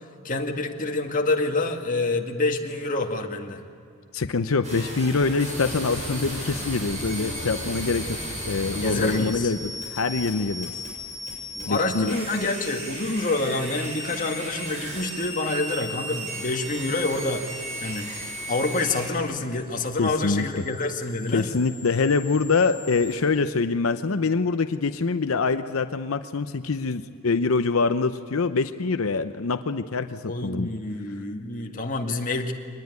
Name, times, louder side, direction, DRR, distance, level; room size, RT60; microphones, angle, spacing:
voice 1, 0.2-3.6 8.7-9.5 11.5-18.1 18.5-21.5 30.3-32.5, left 2 dB, 40° left, 3 dB, 2.0 m, -27 dB
voice 2, 4.1-8.2 8.5-10.7 11.7-12.2 20.0-20.5 21.3-30.7, left 4 dB, 85° left, 9 dB, 0.7 m, -25 dB
sound 1, 4.6-23.1, equal, 35° right, 8.0 m, -35 dB
24.0 x 20.0 x 9.6 m, 2.4 s
head